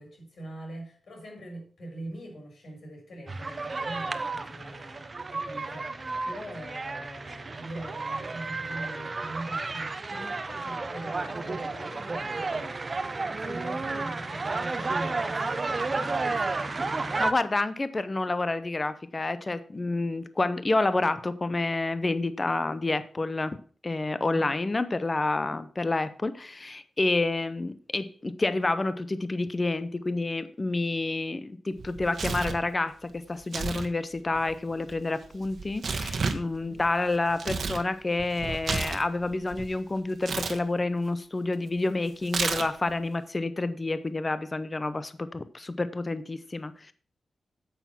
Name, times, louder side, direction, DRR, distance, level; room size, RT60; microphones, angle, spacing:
voice 1, 0.0-17.3 24.3-24.5 36.6-36.8, right 1 dB, 65° left, 1 dB, 5.8 m, -43 dB
sound 1, 3.3-17.3, right 3 dB, 30° right, 0.8 m, -32 dB
voice 2, 16.9-23.6 23.8-46.9, left 2 dB, 25° left, 14 dB, 0.7 m, -29 dB
Tearing, 31.8-32.6 33.4-33.9 34.1-37.8 38.2-39.7 40.2-40.6 42.2-42.9, right 4 dB, 60° right, 1.3 m, -32 dB
8.9 x 8.2 x 5.9 m, 0.43 s
wide cardioid pair, 130°, 0 cm